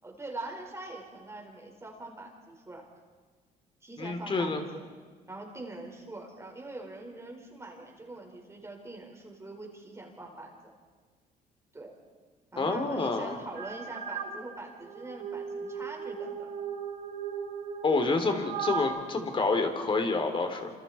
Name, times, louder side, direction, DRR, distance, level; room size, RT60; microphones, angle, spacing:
voice 1, 0.0-2.9 3.8-4.9 5.3-10.5 11.7-12.0 12.5-16.5, right 2 dB, 15° right, 1 dB, 4.7 m, -43 dB
voice 2, 4.0-4.6 12.6-13.4 17.8-20.7, left 3 dB, 30° left, 6 dB, 3.2 m, -28 dB
sound 1, 13.6-14.3 14.8-18.8, right 7 dB, 80° right, 4.5 m, -37 dB
28.0 x 27.5 x 4.4 m, 1.4 s
cardioid pair, 110°, 17 cm